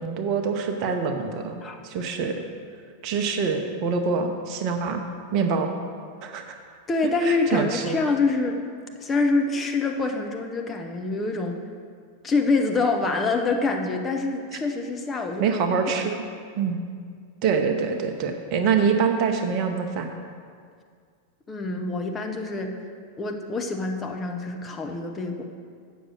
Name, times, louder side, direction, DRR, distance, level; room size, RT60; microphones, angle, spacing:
voice 1, 0.0-2.4 3.0-5.0 5.3-5.7 6.2-6.5 7.2-8.0 15.4-16.2 16.6-16.8 17.4-20.1, right 5 dB, 40° right, 5 dB, 0.8 m, -25 dB
voice 2, 6.9-8.6 9.0-11.6 12.2-15.6 15.9-16.0 21.5-22.7 23.2-25.4, left 3 dB, 20° left, 3 dB, 0.8 m, -25 dB
8.1 x 6.4 x 6.2 m, 2.1 s
figure-of-eight pair, 90°, 0 cm